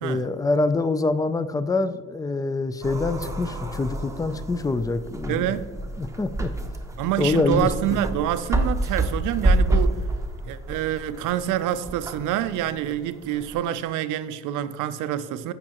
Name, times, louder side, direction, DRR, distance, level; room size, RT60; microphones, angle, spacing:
voice 1, 0.0-5.6 6.0-6.5 7.2-8.0, left 3 dB, 15° left, 0.3 m, -25 dB
sound 1, 2.8-13.5, right 1 dB, 10° right, 0.8 m, -28 dB
voice 2, 5.3-5.7 7.0-10.0 10.5-15.5, right 11 dB, 90° right, 0.5 m, -27 dB
8.3 x 5.3 x 2.9 m
cardioid pair, 90°, 30 cm